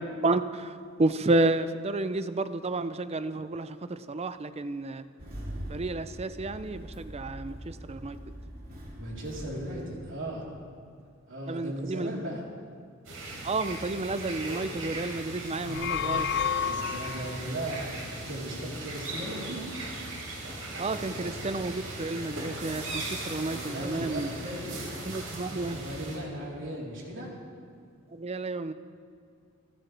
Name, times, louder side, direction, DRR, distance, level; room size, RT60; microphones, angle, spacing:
voice 1, 1.0-5.0 5.7-7.5 7.9-8.2 11.5-12.1 13.4-16.3 20.8-24.3 25.1-25.8 28.2-28.7, right 2 dB, 30° right, 12 dB, 0.5 m, -30 dB
Engine starting, 5.2-10.7, equal, 45° right, 3.3 m, -42 dB
voice 2, 8.9-10.5 11.3-12.4 16.6-19.8 23.5-24.9 25.4-27.3, right 1 dB, 65° right, -4 dB, 3.9 m, -37 dB
sound 1, 13.0-26.2, right 2 dB, 85° right, 3.9 m, -38 dB
sound 2, 15.5-17.5, left 7 dB, 55° left, 0.4 m, -30 dB
29.5 x 11.5 x 3.4 m, 2.3 s
head